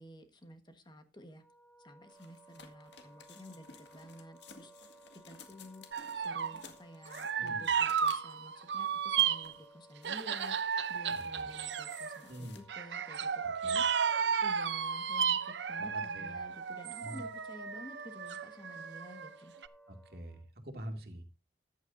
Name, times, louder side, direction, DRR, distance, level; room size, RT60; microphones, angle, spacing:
voice 1, 0.0-1.4 1.8-4.9 5.2-5.9 6.1-19.5, equal, 25° left, 7 dB, 1.4 m, -52 dB
Wind instrument woodwind instrument, 1.4-20.5, right 1 dB, 10° left, 2.1 m, -59 dB
sound 1, 2.1-8.5 9.1-9.7 10.0-12.6, left 5 dB, 75° left, 1.8 m, -56 dB
sound 2, 5.9-6.6 7.1-9.5 10.0-12.2 12.7-19.3 19.6-19.7, right 7 dB, 80° right, 0.7 m, -33 dB
voice 2, 11.1-11.5 12.3-12.6 13.6-13.8 15.8-16.4 17.0-17.2 19.9-21.2, equal, 55° right, 5 dB, 2.2 m, -45 dB
14.5 x 10.5 x 2.6 m, 0.26 s
head